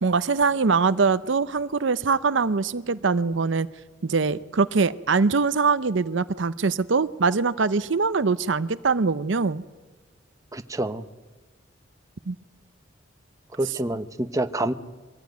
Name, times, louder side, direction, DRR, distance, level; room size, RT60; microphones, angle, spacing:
voice 1, 0.0-3.7 4.0-9.6 12.3-12.4, right 4 dB, 65° right, 14 dB, 0.6 m, -23 dB
voice 2, 10.5-11.0 13.5-14.7, right 1 dB, 15° right, 9 dB, 0.9 m, -27 dB
24.0 x 18.0 x 9.3 m, 1.2 s
head